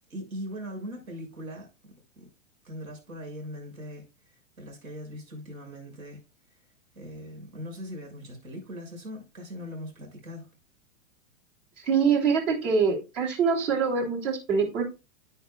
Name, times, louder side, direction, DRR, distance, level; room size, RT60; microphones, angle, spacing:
voice 1, 0.1-2.2 2.6-6.2 6.9-10.5, equal, 85° right, 6.3 m, -40 dB
voice 2, 11.8-14.8, right 5 dB, 60° right, 3.3 m, -24 dB
10.5 x 9.2 x 2.3 m
hypercardioid pair, 120°, 40 cm